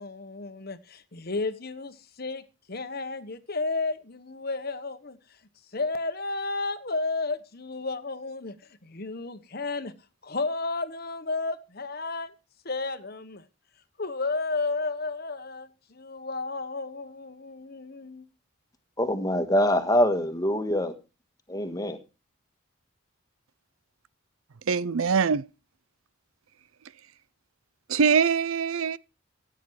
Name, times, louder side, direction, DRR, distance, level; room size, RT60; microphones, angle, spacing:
voice 1, 0.0-5.2 5.7-8.5 8.8-9.9 10.2-12.3 12.6-13.4 14.0-18.3, left 3 dB, 45° left, 1.2 m, -32 dB
voice 2, 19.0-20.9 21.5-22.0, left 1 dB, 15° left, 1.6 m, -24 dB
voice 3, 24.7-25.5 27.9-29.0, right 6 dB, 80° right, 0.6 m, -23 dB
16.5 x 9.3 x 4.7 m
head